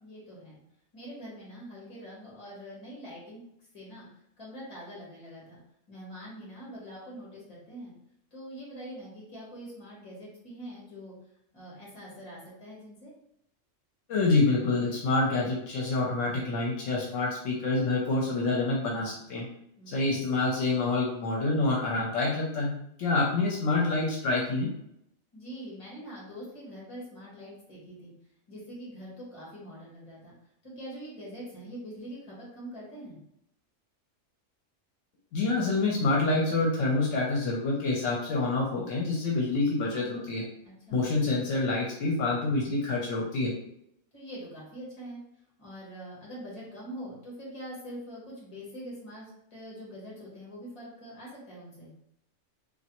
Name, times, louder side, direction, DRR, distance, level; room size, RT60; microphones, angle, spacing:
voice 1, 0.0-0.6 0.9-3.4 3.7-4.1 4.4-5.6 5.9-7.9 8.3-11.1 11.5-13.1 19.8-20.2 25.3-28.1 28.5-30.3 30.6-33.2 40.6-41.0 44.1-45.2 45.6-51.9, equal, 25° left, -5 dB, 1.2 m, -44 dB
voice 2, 14.1-19.5 19.9-22.7 23.0-24.7 35.3-40.4 40.9-43.5, left 3 dB, 75° left, -2 dB, 1.0 m, -27 dB
3.2 x 2.4 x 2.9 m, 0.77 s
omnidirectional pair, 1.3 m